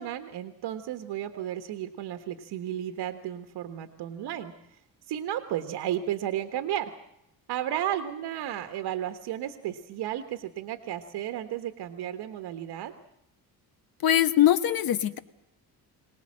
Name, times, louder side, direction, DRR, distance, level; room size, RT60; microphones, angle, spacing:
voice 1, 0.0-4.8 5.1-6.9 7.5-12.9, right 11 dB, 85° right, 8 dB, 1.4 m, -33 dB
voice 2, 14.0-15.2, left 11 dB, 65° left, 12 dB, 1.3 m, -22 dB
24.0 x 19.0 x 7.5 m, 0.82 s
cardioid pair, 160°, 39 cm